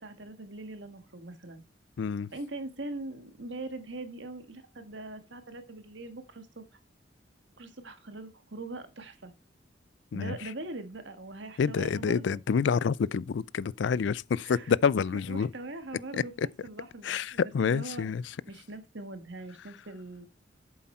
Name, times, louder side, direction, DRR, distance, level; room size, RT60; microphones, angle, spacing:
voice 1, 0.0-1.6 2.3-6.6 7.6-9.3 10.1-12.4 14.4-14.8 15.1-18.1 18.5-20.3, right 2 dB, 70° right, 1.6 m, -42 dB
voice 2, 2.0-2.3 10.1-10.3 11.6-15.5 16.4-16.5 17.0-18.2, left 6 dB, 70° left, 0.4 m, -28 dB
8.4 x 7.5 x 4.3 m
head